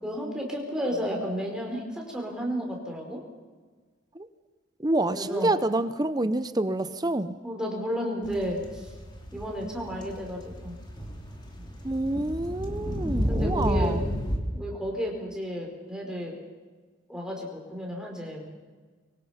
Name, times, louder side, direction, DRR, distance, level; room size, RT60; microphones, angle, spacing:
voice 1, 0.0-3.2 5.1-5.5 7.4-8.9 9.3-10.8 11.6-11.7 12.7-12.8 13.3-14.0 14.5-16.4 17.1-18.5, equal, 5° right, -1 dB, 4.8 m, -32 dB
voice 2, 4.8-7.4 11.8-14.1, right 2 dB, 20° right, 12 dB, 0.7 m, -27 dB
sound 1, 8.2-14.4, equal, 20° left, 2.9 m, -32 dB
24.0 x 23.5 x 5.9 m, 1.4 s
head